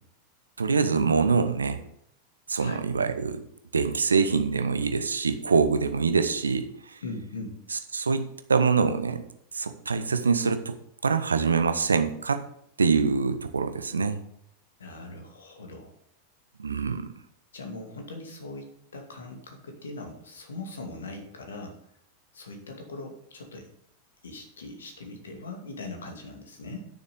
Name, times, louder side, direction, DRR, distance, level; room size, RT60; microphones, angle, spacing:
voice 1, 0.6-1.8 2.5-3.4 3.7-7.0 7.9-9.2 9.5-10.8 11.0-12.4 12.8-14.2 16.6-17.1, right 5 dB, 75° right, 9 dB, 0.9 m, -24 dB
voice 2, 7.0-7.6 14.8-15.9 17.5-18.7 18.9-21.8 22.3-23.7 24.2-26.9, left 2 dB, 65° left, 3 dB, 2.4 m, -40 dB
10.0 x 6.6 x 5.3 m, 0.70 s
figure-of-eight pair, 90°, 0 cm